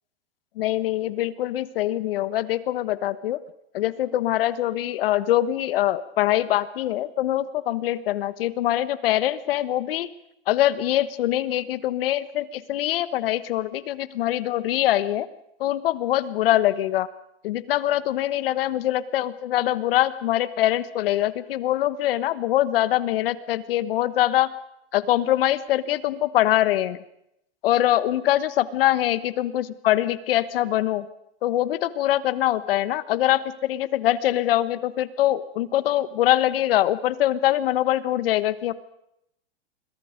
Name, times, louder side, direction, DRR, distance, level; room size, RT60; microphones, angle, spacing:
voice 1, 0.6-3.4 3.7-10.1 10.5-15.3 15.6-17.1 17.4-24.5 24.9-27.0 27.6-31.0 31.4-38.7, left 13 dB, 60° left, 14 dB, 1.3 m, -23 dB
28.5 x 22.5 x 5.2 m, 0.81 s
supercardioid pair, 160°, 32 cm